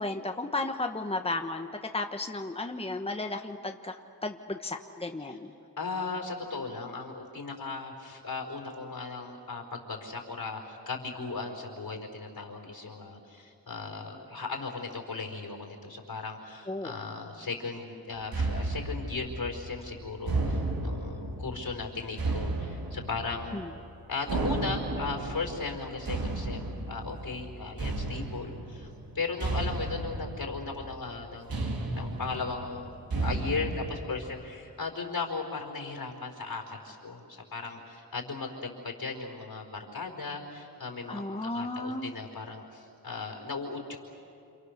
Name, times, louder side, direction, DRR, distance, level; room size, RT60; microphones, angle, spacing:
voice 1, 0.0-4.0 4.2-5.5 16.7-16.9 23.5-23.7 41.1-42.2, left 2 dB, 15° left, 4 dB, 1.3 m, -34 dB
voice 2, 5.8-23.6 24.1-32.9 33.2-44.0, left 4 dB, 75° left, 2 dB, 4.9 m, -37 dB
sound 1, 18.3-33.9, right 2 dB, 70° right, 2.9 m, -34 dB
29.5 x 27.5 x 6.7 m, 2.5 s
cardioid pair, 70°, 37 cm